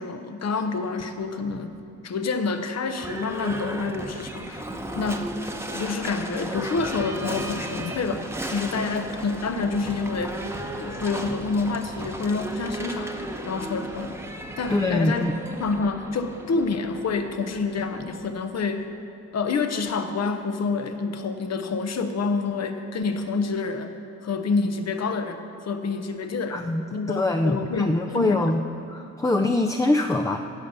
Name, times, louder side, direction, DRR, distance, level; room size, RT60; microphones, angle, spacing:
voice 1, 0.0-1.8 2.0-4.7 5.0-5.3 5.7-10.4 10.8-14.1 14.6-15.3 15.6-18.9 19.3-23.9 24.2-26.6 26.9-28.4, left 4 dB, 55° left, 7 dB, 1.0 m, -28 dB
Livestock farm animals working animals / Bell, 2.9-18.7, right 1 dB, 10° right, 1.0 m, -35 dB
voice 2, 14.7-15.3 26.5-28.6 28.9-30.4, left 2 dB, 10° left, 5 dB, 0.5 m, -24 dB
16.0 x 5.5 x 6.7 m, 2.8 s
cardioid pair, 75°, 30 cm